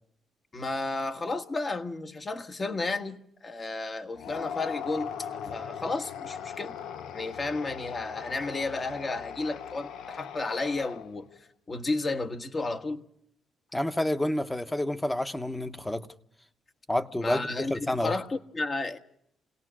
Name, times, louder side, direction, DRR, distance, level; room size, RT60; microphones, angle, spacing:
voice 1, 0.5-6.7 7.1-11.3 11.7-13.1 17.2-19.0, left 3 dB, 35° left, 1.5 m, -32 dB
sound 1, 4.1-11.3, left 8 dB, 85° left, 0.8 m, -39 dB
voice 2, 13.7-16.1 16.9-18.1, left 1 dB, 10° left, 1.1 m, -29 dB
28.0 x 18.5 x 6.3 m
cardioid pair, 85°, 0 cm